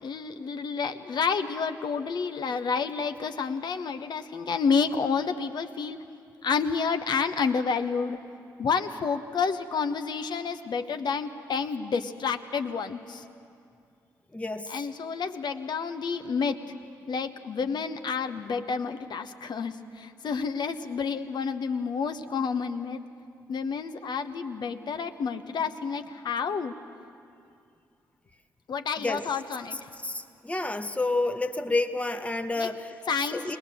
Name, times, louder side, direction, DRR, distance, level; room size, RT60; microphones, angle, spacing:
voice 1, 0.0-6.0 6.4-8.2 8.6-13.2 14.7-16.6 17.1-23.0 23.5-26.7 28.7-29.9 32.6-32.7 33.1-33.6, left 5 dB, 55° left, 8 dB, 1.1 m, -29 dB
voice 2, 14.3-14.7 29.0-29.2 30.0-32.9 33.3-33.6, left 2 dB, 15° left, 7 dB, 1.2 m, -29 dB
22.0 x 19.5 x 6.9 m, 2.4 s
hypercardioid pair, 40°, 9 cm